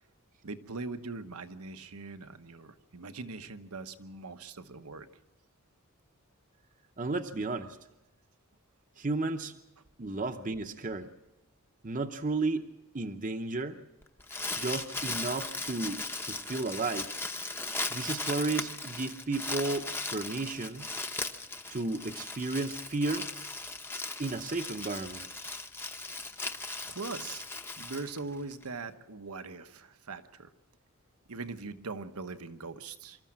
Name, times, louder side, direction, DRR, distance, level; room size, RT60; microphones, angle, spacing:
voice 1, 0.4-5.1 26.1-26.2 26.9-27.4 27.8-30.5 31.3-33.2, right 3 dB, 85° right, 9 dB, 1.1 m, -41 dB
voice 2, 7.0-7.8 9.0-9.5 10.0-11.1 11.8-12.7 12.9-13.8 14.6-17.1 17.9-20.8 21.7-23.3 24.2-25.3, right 3 dB, 35° right, 7 dB, 0.8 m, -33 dB
Crumpling crinkling, 14.0-28.6, left 3 dB, 10° left, 0.8 m, -38 dB
25.5 x 14.0 x 7.5 m, 0.94 s
head